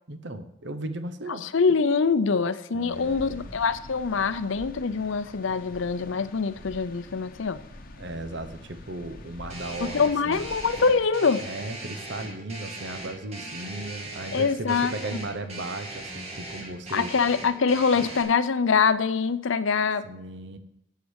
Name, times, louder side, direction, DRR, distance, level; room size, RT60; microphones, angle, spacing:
voice 1, 0.1-1.5 2.7-3.5 8.0-10.4 11.4-17.1 17.9-18.1 20.0-20.6, right 2 dB, 55° right, 10 dB, 0.9 m, -36 dB
voice 2, 1.4-7.6 9.8-11.4 14.3-15.2 16.9-20.0, left 5 dB, 70° left, 13 dB, 0.6 m, -24 dB
sound 1, 2.9-11.1, left 2 dB, 45° left, 1.0 m, -46 dB
sound 2, 9.5-18.2, right 2 dB, 30° right, 2.0 m, -39 dB
8.3 x 8.1 x 6.4 m, 0.80 s
head